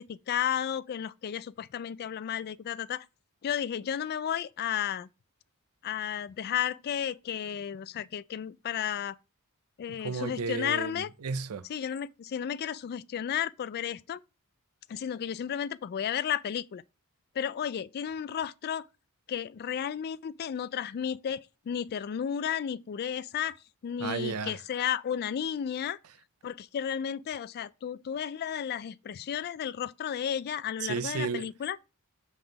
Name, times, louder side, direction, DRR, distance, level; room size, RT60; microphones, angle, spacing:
voice 1, 0.0-3.1 3.4-5.1 5.8-9.2 9.8-11.1 11.7-14.2 14.9-16.8 17.4-18.9 19.3-23.6 23.8-26.0 26.4-31.8, left 9 dB, 45° left, 0.3 m, -33 dB
voice 2, 10.0-11.7 24.0-24.6 30.8-31.5, right 5 dB, 75° right, 0.5 m, -33 dB
5.9 x 3.5 x 5.2 m
head